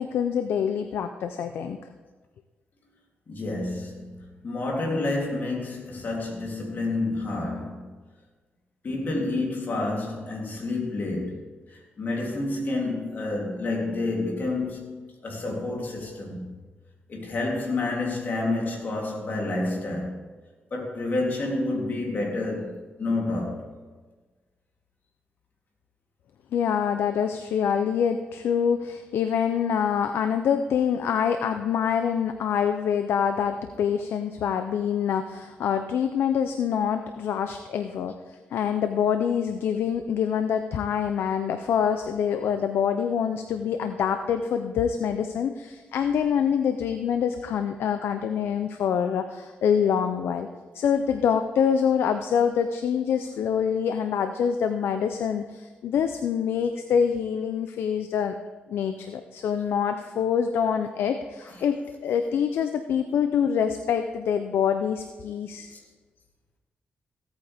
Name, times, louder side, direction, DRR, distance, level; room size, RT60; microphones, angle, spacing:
voice 1, 0.0-1.8 26.5-50.5 50.7-58.4 58.7-65.7, left 7 dB, 85° left, 0.6 m, -25 dB
voice 2, 3.3-7.9 8.8-16.5 17.1-20.2 20.7-23.7 61.4-61.6 65.7-65.8, left 2 dB, 55° left, 3.2 m, -29 dB
16.0 x 8.9 x 3.5 m
cardioid pair, 80°, 4 cm